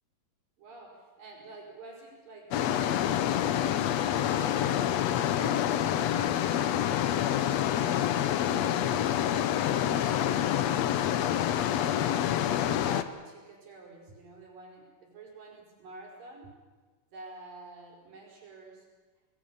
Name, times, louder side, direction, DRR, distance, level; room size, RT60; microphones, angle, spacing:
voice 1, 0.6-5.1 5.4-8.1 8.4-12.1 12.6-16.5 17.1-18.9, right 3 dB, 80° right, 0 dB, 6.8 m, -49 dB
sound 1, 2.5-13.0, left 10 dB, 70° left, 1.8 m, -27 dB
28.5 x 20.5 x 7.1 m, 1.4 s
omnidirectional pair, 3.9 m